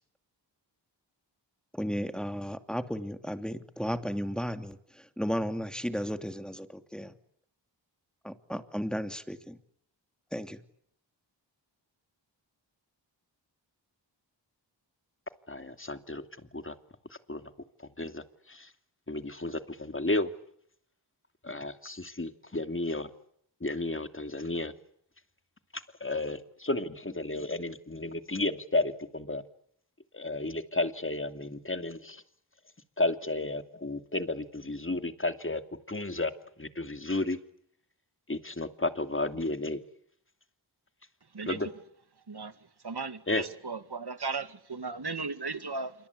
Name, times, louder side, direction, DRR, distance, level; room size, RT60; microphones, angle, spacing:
voice 1, 1.7-7.1 8.2-9.6 10.3-10.6, equal, ahead, 8 dB, 2.8 m, -34 dB
voice 2, 15.5-16.3 16.5-16.7 17.3-17.5 17.8-18.7 19.1-20.3 21.4-23.1 23.6-24.7 25.7-29.4 30.1-32.2 33.0-35.6 35.9-36.3 36.6-37.4 38.3-39.8 41.5-41.7 43.3-43.4, left 2 dB, 25° left, 9 dB, 2.6 m, -32 dB
voice 3, 42.8-45.9, right 4 dB, 60° right, 11 dB, 2.3 m, -36 dB
27.5 x 24.5 x 8.4 m, 0.69 s
cardioid pair, 45°, 45 cm